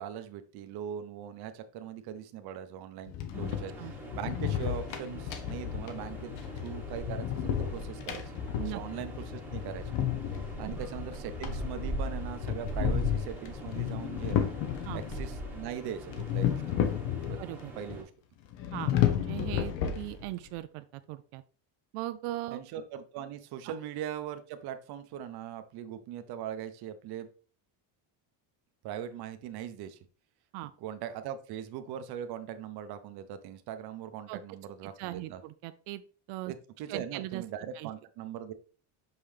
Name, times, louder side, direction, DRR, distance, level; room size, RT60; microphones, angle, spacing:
voice 1, 0.0-9.9 10.6-14.5 14.9-16.8 17.3-17.4 17.8-18.1 22.5-27.3 28.8-30.0 30.8-35.4 36.8-38.5, right 9 dB, 50° right, 10 dB, 0.7 m, -40 dB
sound 1, 3.1-15.3 16.1-17.6 17.9-18.0 18.5-20.5, left 10 dB, 65° left, 0.9 m, -33 dB
sound 2, 3.3-18.0, equal, 5° right, 1.0 m, -40 dB
voice 2, 17.4-17.7 18.7-21.4 21.9-22.6 23.7-23.8 30.5-30.7 34.3-34.4 34.8-36.0 36.3-36.5 36.9-37.4 37.8-37.9, right 16 dB, 85° right, 11 dB, 0.6 m, -39 dB
5.8 x 5.6 x 3.3 m, 0.39 s
cardioid pair, 180°, 48 cm